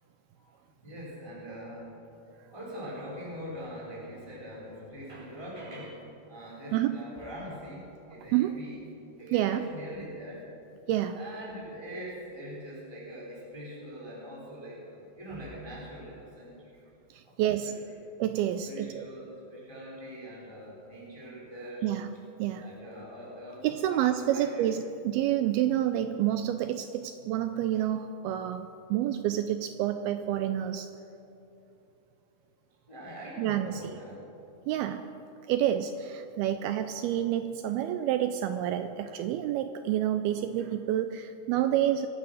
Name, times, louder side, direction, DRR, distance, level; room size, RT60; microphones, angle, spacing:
voice 1, 0.8-6.0 6.3-8.8 9.2-10.4 11.1-16.7 17.2-17.7 18.6-21.9 22.6-24.6 32.9-34.1, equal, 10° left, -5 dB, 2.7 m, -43 dB
voice 2, 9.3-9.7 10.9-11.2 17.1-17.7 18.2-19.1 21.8-22.1 22.4-22.7 23.6-30.9 33.4-34.0 34.7-35.1 35.5-42.1, right 11 dB, 85° right, 9 dB, 2.2 m, -28 dB
23.5 x 8.7 x 6.4 m, 2.8 s
omnidirectional pair, 4.9 m